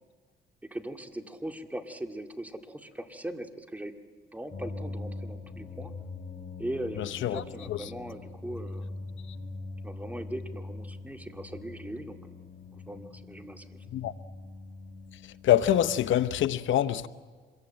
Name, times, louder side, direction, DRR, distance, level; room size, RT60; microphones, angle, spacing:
voice 1, 0.7-4.0 4.3-5.9 6.6-8.9 9.8-12.2 12.9-13.8, right 1 dB, 10° right, 2.2 m, -39 dB
sound 1, 4.5-16.5, left 3 dB, 45° left, 4.5 m, -42 dB
voice 2, 7.0-7.4 7.7-7.8 13.9-14.1 15.4-17.1, left 11 dB, 75° left, 0.9 m, -25 dB
25.5 x 22.0 x 9.0 m
cardioid pair, 90°, 20 cm